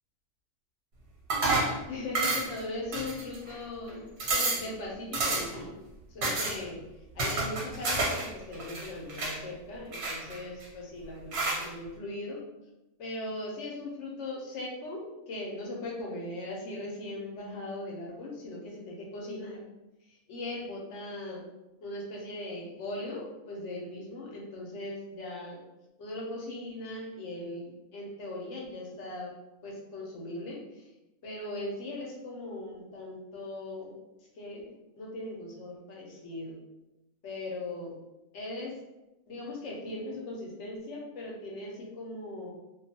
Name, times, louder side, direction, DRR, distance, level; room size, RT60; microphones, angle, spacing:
sound 1, 1.3-1.8 2.1-2.6 2.9-3.5 3.9-4.0 4.2-4.7 5.1-5.6 6.2-6.6 7.2-8.3 8.5-9.4 9.9-10.6 11.3-11.6, right 3 dB, 55° right, 0.8 m, -29 dB
voice 1, 1.9-4.0 4.3-5.8 6.1-6.8 7.1-12.4 13.0-19.6 20.1-21.4 21.8-25.6 26.0-29.3 29.6-30.9 31.2-33.9 34.4-36.6 37.2-37.9 38.3-38.8 39.3-42.5, left 2 dB, 60° left, -2 dB, 0.9 m, -39 dB
2.5 x 2.3 x 2.7 m, 0.99 s
omnidirectional pair, 1.5 m